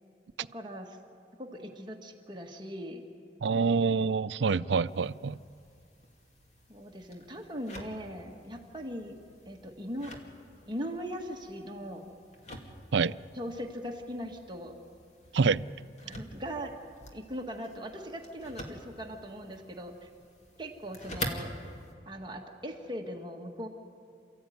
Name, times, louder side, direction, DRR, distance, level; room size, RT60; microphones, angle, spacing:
voice 1, 0.5-1.0 1.4-3.0 6.7-9.2 9.5-10.1 10.7-12.1 13.3-14.8 16.0-16.8 17.1-20.1 20.6-21.5 22.1-23.7, equal, 25° right, 1 dB, 1.9 m, -40 dB
voice 2, 3.4-5.4 12.9-13.2 15.3-15.6, right 5 dB, 85° right, 16 dB, 0.5 m, -26 dB
sound 1, 4.8-21.9, left 1 dB, 40° left, 2.5 m, -46 dB
28.5 x 14.5 x 9.4 m, 2.3 s
head